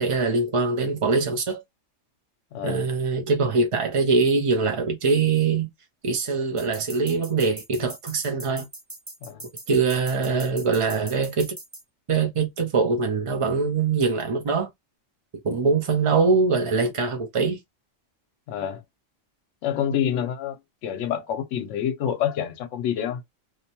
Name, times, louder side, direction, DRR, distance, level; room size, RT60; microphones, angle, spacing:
voice 1, 0.0-1.6 2.6-5.7 6.0-8.7 9.7-11.5 12.1-14.7 15.4-17.6, right 4 dB, 45° right, 0.4 m, -23 dB
voice 2, 2.5-2.9 9.2-9.4 18.5-18.8 19.6-23.2, left 9 dB, 75° left, 0.9 m, -27 dB
sound 1, 6.6-11.8, right 1 dB, 10° right, 0.8 m, -41 dB
2.7 x 2.1 x 2.8 m
omnidirectional pair, 1.3 m